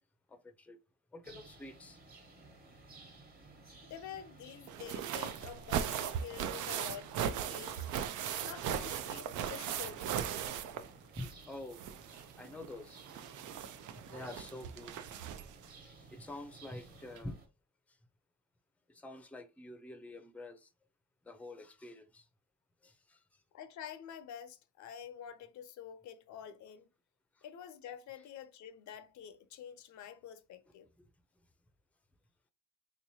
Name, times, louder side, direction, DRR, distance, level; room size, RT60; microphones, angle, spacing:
voice 1, 0.3-0.8 1.1-2.0 11.2-11.8 12.4-13.0 13.4-13.5 14.1-15.3 15.6-17.4 17.9-18.0 18.9-20.7 21.2-22.3 22.8-23.4 27.4-27.5 31.0-31.1, left 2 dB, 5° left, 0.5 m, -48 dB
sound 1, 1.2-17.5, right 3 dB, 30° right, 1.2 m, -57 dB
voice 2, 3.8-7.8 8.4-10.2 23.5-26.9 27.4-30.9, left 9 dB, 70° left, 0.6 m, -48 dB
sound 2, 4.7-11.4 11.7-15.7 16.7-16.8 17.2-17.3, right 9 dB, 80° right, 0.5 m, -38 dB
3.4 x 2.9 x 2.7 m
cardioid pair, 90°, 30 cm